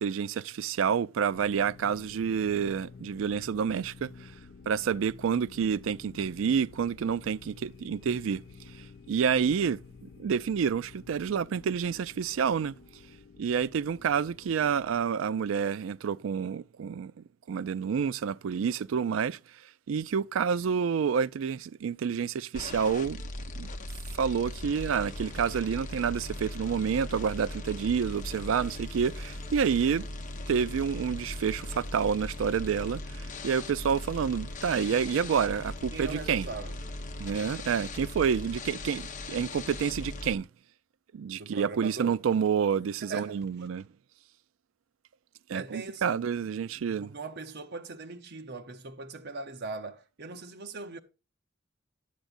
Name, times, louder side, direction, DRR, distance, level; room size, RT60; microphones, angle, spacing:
voice 1, 0.0-4.1 4.7-8.4 9.1-9.8 10.2-12.8 13.4-19.4 19.9-23.2 23.6-23.7 24.1-30.1 30.5-36.5 37.2-40.5 41.1-43.8 45.5-47.1, right 7 dB, 90° right, 0.4 m, -28 dB
sound 1, 1.3-15.1, left 4 dB, 60° left, 0.5 m, -51 dB
sound 2, 22.5-40.3, left 2 dB, 40° left, 0.9 m, -39 dB
voice 2, 35.9-36.8 41.4-42.2 43.0-43.7 45.5-46.2 46.6-51.0, right 3 dB, 60° right, 0.8 m, -40 dB
10.5 x 8.0 x 2.5 m
head